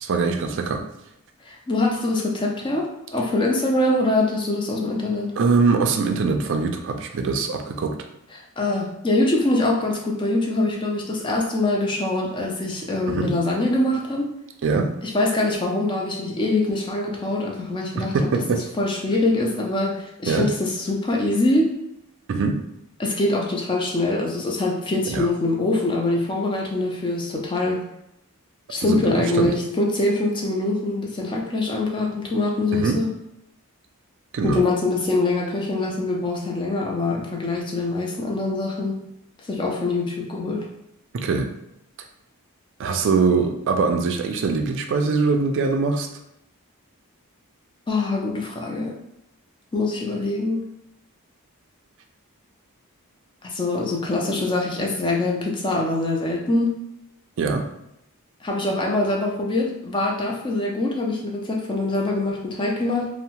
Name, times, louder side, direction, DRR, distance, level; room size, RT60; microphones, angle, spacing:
voice 1, 0.0-0.8 5.4-7.9 13.1-13.3 14.6-14.9 18.0-18.6 20.3-20.5 22.3-22.6 25.1-25.3 28.8-29.5 32.7-33.0 34.3-34.6 41.1-41.5 42.8-46.1 57.4-57.6, right 4 dB, 55° right, 4 dB, 0.3 m, -22 dB
voice 2, 1.5-5.3 8.3-14.3 15.0-21.7 23.0-27.8 28.7-33.1 34.4-39.0 39.5-40.7 47.9-48.9 49.7-50.7 53.4-56.8 58.4-63.1, left 2 dB, 20° left, 0 dB, 0.4 m, -24 dB
2.7 x 2.0 x 2.9 m, 0.80 s
head